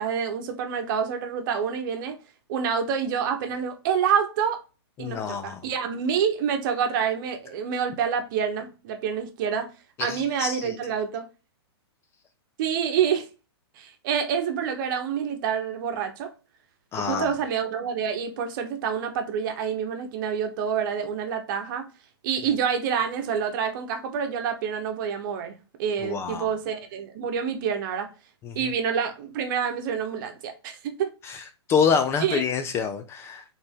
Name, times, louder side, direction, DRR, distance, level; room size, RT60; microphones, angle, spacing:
voice 1, 0.0-2.2 2.5-4.6 5.0-9.7 10.0-11.3 12.6-13.3 13.8-16.3 16.9-21.9 22.2-28.1 28.5-31.1 32.2-32.4, right 7 dB, 50° right, 1.0 m, -27 dB
voice 2, 5.0-5.6 10.0-10.8 16.9-17.3 26.0-26.5 28.4-28.6 31.3-31.4 31.7-33.4, left 6 dB, 20° left, 0.3 m, -26 dB
4.3 x 3.4 x 3.6 m
hypercardioid pair, 140°, 14 cm